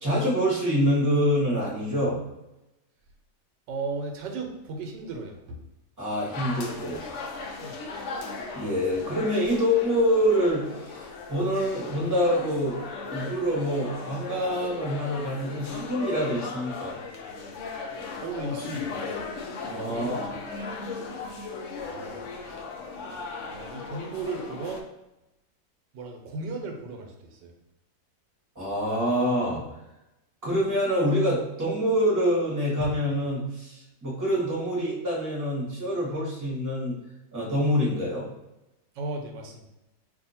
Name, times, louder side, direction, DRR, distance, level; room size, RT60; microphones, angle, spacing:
voice 1, 0.0-2.2 6.0-7.0 8.5-11.0 11.3-12.8 13.1-17.0 19.6-20.3 28.5-29.6 30.4-36.9 37.3-38.3, equal, 10° right, -6 dB, 1.1 m, -26 dB
voice 2, 3.7-5.6 7.6-7.8 18.2-19.2 19.9-20.7 21.8-22.6 23.4-24.8 25.9-27.5 38.9-39.7, right 3 dB, 90° right, 3 dB, 1.3 m, -36 dB
sound 1, 6.3-24.8, left 4 dB, 75° left, 0.6 m, -37 dB
2.8 x 2.7 x 4.1 m, 0.94 s
omnidirectional pair, 1.8 m